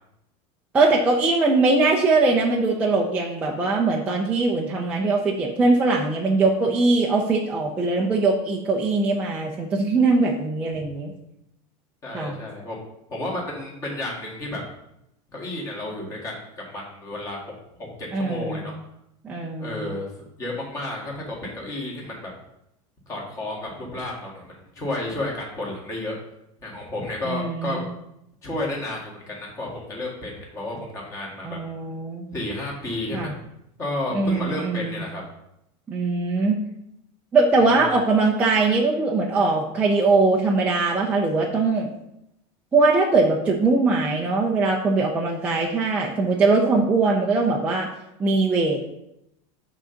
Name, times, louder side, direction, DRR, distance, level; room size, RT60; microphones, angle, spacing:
voice 1, 0.7-11.1 12.1-12.4 18.1-18.7 19.2-19.8 27.3-27.9 31.4-32.3 33.1-33.3 34.1-35.0 35.9-36.6 37.3-41.9 42.7-47.9 48.2-48.9, right 3 dB, 10° right, -2 dB, 0.4 m, -21 dB
voice 2, 12.0-12.8 13.1-14.6 15.3-17.4 17.8-18.7 19.6-20.1 20.4-22.3 23.1-26.1 26.6-27.8 28.4-31.6 32.3-33.4 33.8-35.2 37.6-37.9, left 1 dB, 20° left, -3 dB, 1.8 m, -32 dB
7.6 x 3.8 x 5.6 m, 0.83 s
supercardioid pair, 180°, 16 cm